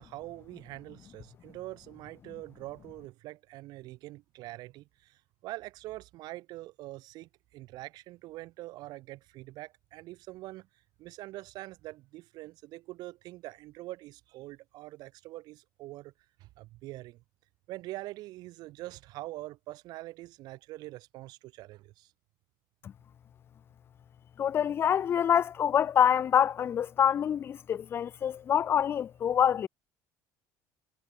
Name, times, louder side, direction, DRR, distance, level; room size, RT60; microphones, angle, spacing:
voice 1, 0.0-10.7 11.0-16.1 16.4-17.2 17.7-22.1, right 18 dB, 60° right, 3.3 m, -44 dB
voice 2, 24.4-29.7, left 9 dB, 30° left, 0.8 m, -26 dB
cardioid pair, 155°, 8 cm